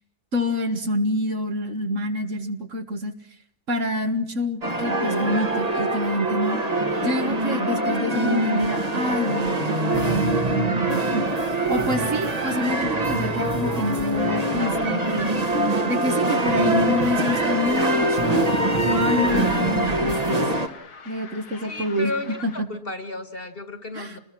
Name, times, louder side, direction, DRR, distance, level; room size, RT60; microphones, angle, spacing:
voice 1, 0.3-3.1 3.7-6.6 7.0-15.3 15.9-18.4 18.9-20.4 21.1-22.1 22.4-22.7 23.9-24.2, left 1 dB, 55° right, 6 dB, 2.0 m, -27 dB
sound 1, 4.6-20.7, right 2 dB, 25° right, 1.4 m, -23 dB
sound 2, 16.3-22.6, left 5 dB, 90° left, 2.3 m, -44 dB
voice 2, 21.6-24.2, left 2 dB, 40° left, 9 dB, 1.9 m, -33 dB
29.0 x 21.0 x 6.1 m, 0.64 s
omnidirectional pair, 1.6 m